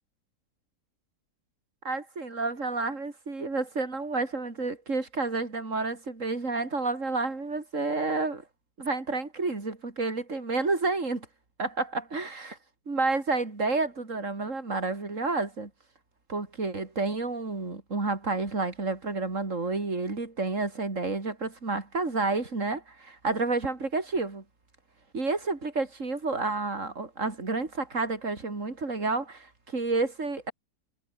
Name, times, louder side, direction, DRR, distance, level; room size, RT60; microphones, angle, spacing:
voice 1, 1.8-8.4 8.8-11.3 11.6-12.6 12.9-15.7 16.3-24.4 25.1-29.5 29.7-30.5, right 3 dB, 45° right, 4.0 m, -30 dB
omnidirectional pair, 1.8 m